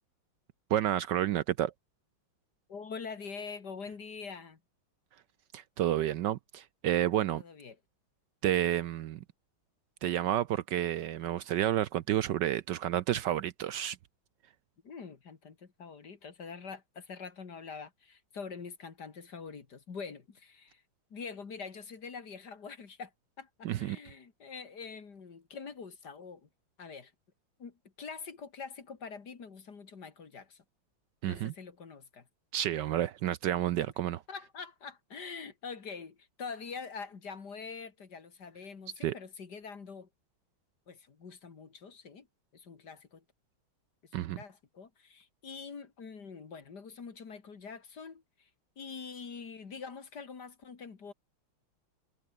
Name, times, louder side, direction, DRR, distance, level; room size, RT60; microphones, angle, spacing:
voice 1, 0.7-1.7 5.5-7.4 8.4-9.2 10.0-14.0 23.6-24.0 31.2-31.5 32.5-34.2 39.0-39.1 44.1-44.4, right 12 dB, 70° right, 1.2 m, -30 dB
voice 2, 2.7-4.6 7.3-7.8 14.8-20.8 21.1-23.1 23.4-26.5 26.8-27.1 27.6-30.6 31.2-32.3 34.3-40.1 40.9-42.3 42.5-43.2 44.1-48.5 48.8-51.1, left 5 dB, 55° left, 2.8 m, -45 dB
omnidirectional pair, 2.2 m